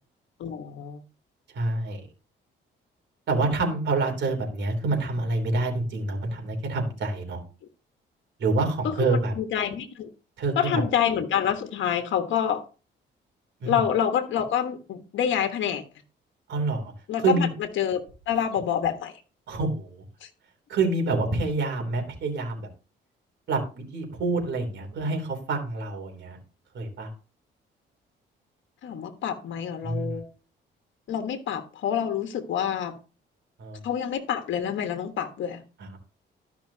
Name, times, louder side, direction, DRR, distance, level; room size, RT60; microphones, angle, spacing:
voice 1, 0.4-1.0 8.8-10.1 10.5-12.6 13.6-15.8 17.1-19.1 20.2-20.3 28.8-30.3 31.1-32.9 33.8-35.6, left 9 dB, 70° left, 1.3 m, -27 dB
voice 2, 1.5-2.0 3.3-7.4 8.4-9.3 10.4-10.8 13.6-13.8 16.5-16.9 17.2-17.5 19.5-20.0 20.7-22.7 23.5-26.4 26.7-27.1 29.8-30.2 33.6-33.8 35.8-36.0, right 3 dB, 65° right, 3.1 m, -27 dB
13.0 x 5.8 x 2.8 m
cardioid pair, 90°, 20 cm